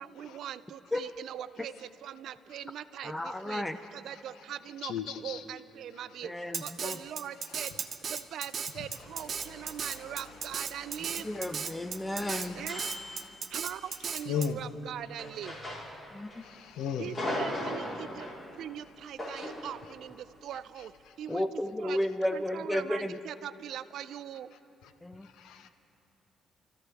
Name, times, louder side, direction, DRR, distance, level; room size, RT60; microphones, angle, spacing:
voice 1, 0.0-6.3 6.6-7.7 8.1-11.3 12.5-12.9 13.5-15.6 17.0-20.9 21.2-22.0 22.3-24.5, right 10 dB, 75° right, 15 dB, 0.4 m, -41 dB
voice 2, 3.0-3.8 6.2-7.0 11.2-12.6 16.1-16.4 21.3-23.2 25.0-25.3, left 1 dB, 10° left, 10 dB, 0.5 m, -33 dB
voice 3, 4.8-5.4 12.2-12.6 14.3-14.6 16.4-17.1 25.4-25.7, left 7 dB, 85° left, 9 dB, 0.7 m, -35 dB
Drum kit, 6.5-14.5, right 6 dB, 50° right, 0.8 m, -36 dB
sound 1, 9.0-14.0 15.2-16.4 16.7-18.5 19.2-19.7, left 1 dB, 30° left, 4.0 m, -40 dB
28.5 x 14.5 x 3.5 m, 2.9 s
cardioid pair, 90°, 0 cm